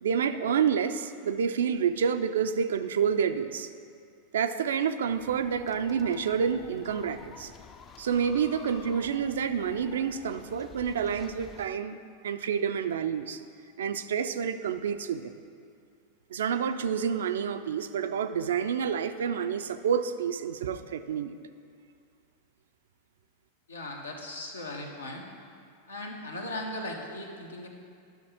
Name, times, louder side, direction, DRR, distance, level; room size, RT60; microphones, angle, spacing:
voice 1, 0.0-3.7 4.3-7.5 8.0-12.0 12.2-13.4 13.8-15.3 16.3-21.3, right 7 dB, 70° right, 10 dB, 0.4 m, -28 dB
sound 1, 5.0-11.7, left 6 dB, 30° left, 0.4 m, -50 dB
voice 2, 23.7-25.3 25.9-27.7, left 1 dB, 85° left, 1 dB, 1.0 m, -38 dB
11.0 x 6.4 x 3.6 m, 2.4 s
figure-of-eight pair, 90°, 0 cm